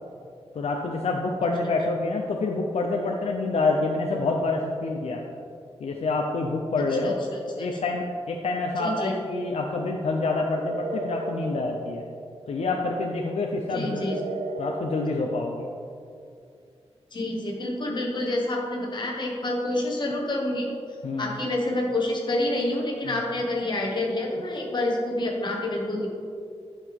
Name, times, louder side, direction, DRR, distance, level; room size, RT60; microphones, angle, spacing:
voice 1, 0.5-5.2 5.8-7.2 7.6-12.0 12.5-14.1 14.6-15.7 21.0-21.3 23.1-23.2, left 3 dB, 75° left, 1 dB, 0.6 m, -27 dB
voice 2, 7.0-7.7 8.8-9.3 13.7-14.2 17.1-20.7 21.2-26.1, left 1 dB, 45° left, -1 dB, 1.3 m, -28 dB
sound 1, 8.7-9.3 10.7-12.7 14.1-16.2, right 4 dB, 70° right, 0.6 m, -36 dB
11.0 x 5.6 x 3.6 m, 2.4 s
wide cardioid pair, 175°, 11 cm